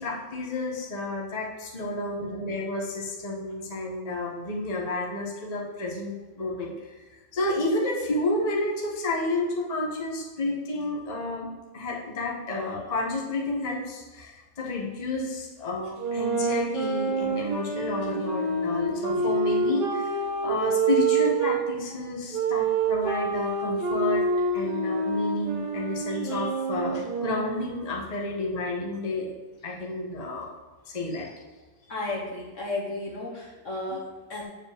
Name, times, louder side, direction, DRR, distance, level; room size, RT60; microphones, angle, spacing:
voice 1, 0.0-11.5 11.7-24.2 24.5-29.3 29.6-30.5 30.9-31.4 33.9-34.0, left 2 dB, 25° left, -2 dB, 1.2 m, -31 dB
sound 1, 16.0-21.6 22.3-27.8, right 3 dB, 65° right, 1.6 m, -27 dB
voice 2, 31.9-34.4, left 2 dB, 45° left, -2 dB, 1.5 m, -34 dB
7.5 x 5.0 x 7.2 m, 1.3 s
omnidirectional pair, 2.1 m